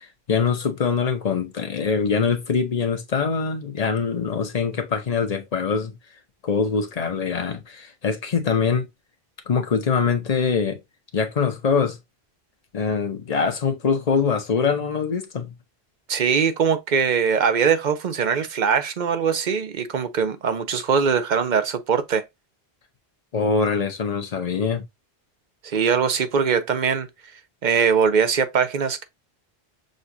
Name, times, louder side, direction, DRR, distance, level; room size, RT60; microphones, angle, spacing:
voice 1, 0.3-5.9 6.4-8.9 9.5-10.8 11.1-12.0 12.7-15.5 23.3-24.8, left 5 dB, 40° left, 0.9 m, -23 dB
voice 2, 16.1-22.2 25.6-27.1 27.6-29.0, right 6 dB, 50° right, 0.7 m, -21 dB
6.5 x 2.4 x 2.7 m
omnidirectional pair, 1.0 m